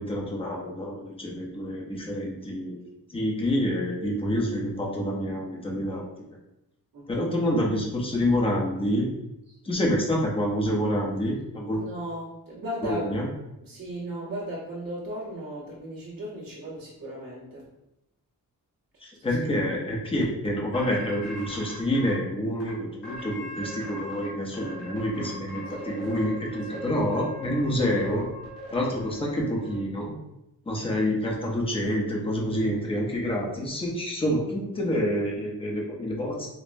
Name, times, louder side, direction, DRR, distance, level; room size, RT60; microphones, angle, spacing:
voice 1, 0.0-2.8 3.1-6.0 7.1-9.1 9.6-11.9 12.8-13.3 19.0-28.2 28.7-30.1 30.7-36.5, equal, 15° left, -2 dB, 0.6 m, -27 dB
voice 2, 11.7-13.2 13.6-17.7 25.8-25.9 26.7-26.8, right 1 dB, 75° right, -7 dB, 1.3 m, -36 dB
sound 1, 20.7-22.1 22.6-22.7 23.0-24.3 24.5-29.7, equal, 80° left, 1.5 m, -40 dB
5.2 x 2.0 x 2.5 m, 0.89 s
wide cardioid pair, 175°, 34 cm